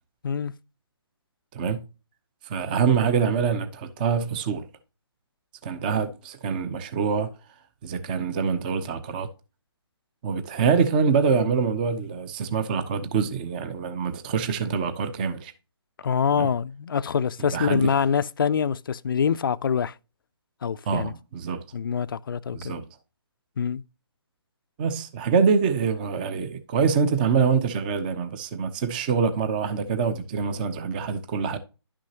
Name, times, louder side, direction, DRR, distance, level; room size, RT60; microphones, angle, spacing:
voice 1, 1.5-1.8 2.4-4.6 5.6-7.3 7.8-9.3 10.2-15.5 16.4-16.5 17.4-18.0 20.9-21.6 22.5-22.8 24.8-31.6, right 6 dB, 20° right, 0.7 m, -25 dB
voice 2, 16.0-19.9 20.6-21.1 21.7-22.8 23.6-23.8, left 7 dB, 50° left, 0.5 m, -25 dB
11.0 x 6.3 x 2.8 m
hypercardioid pair, 160°, 14 cm